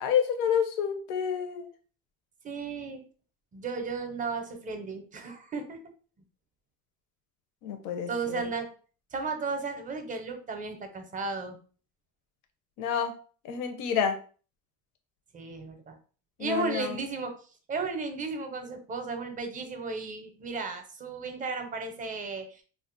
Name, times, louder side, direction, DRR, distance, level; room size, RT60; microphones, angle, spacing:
voice 1, 0.0-1.7 7.6-8.4 12.8-13.1 13.5-14.2 16.4-17.0, left 8 dB, 85° left, 6 dB, 0.6 m, -29 dB
voice 2, 2.4-3.0 3.5-5.8 8.1-8.7 9.1-11.6 15.3-16.0 16.4-17.3 17.7-22.6, right 4 dB, 25° right, 6 dB, 0.5 m, -34 dB
2.4 x 2.1 x 3.8 m, 0.40 s
cardioid pair, 135°, 31 cm